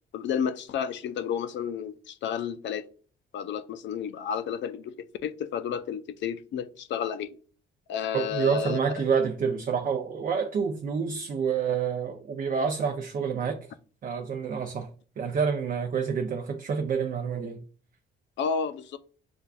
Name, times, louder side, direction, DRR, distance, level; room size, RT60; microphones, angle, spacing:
voice 1, 0.1-2.9 3.3-7.4 7.9-8.8 18.4-19.0, left 7 dB, 65° left, 0.5 m, -31 dB
voice 2, 8.1-13.6 14.0-14.9 15.2-17.6, right 6 dB, 45° right, 0.5 m, -28 dB
6.9 x 2.4 x 2.3 m
cardioid pair, 90°, 20 cm